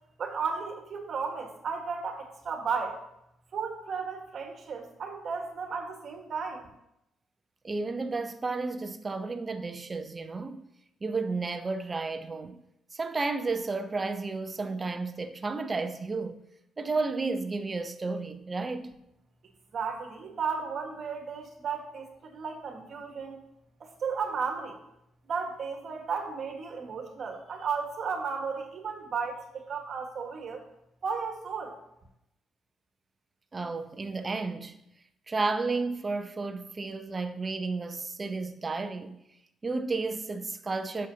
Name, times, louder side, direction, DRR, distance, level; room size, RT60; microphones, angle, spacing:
voice 1, 0.2-3.0 3.5-6.7 19.7-23.4 23.8-24.8 25.2-30.6 31.0-31.8, right 5 dB, 55° right, 1.5 m, -34 dB
voice 2, 7.6-10.6 11.0-12.6 12.9-16.4 16.8-18.9 33.5-34.8 35.3-39.2 39.6-41.1, right 3 dB, 30° right, 0.7 m, -32 dB
11.0 x 6.5 x 2.8 m
cardioid pair, 90°, 0 cm